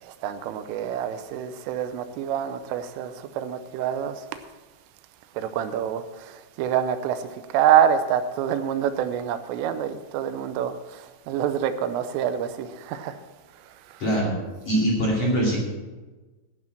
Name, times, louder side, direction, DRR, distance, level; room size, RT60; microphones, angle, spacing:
voice 1, 0.0-4.3 5.3-13.2 13.7-14.2, right 9 dB, 90° right, 3.2 m, -26 dB
voice 2, 14.0-14.4 14.6-15.6, right 1 dB, 40° left, 2.7 m, -22 dB
12.0 x 5.8 x 8.9 m
omnidirectional pair, 5.8 m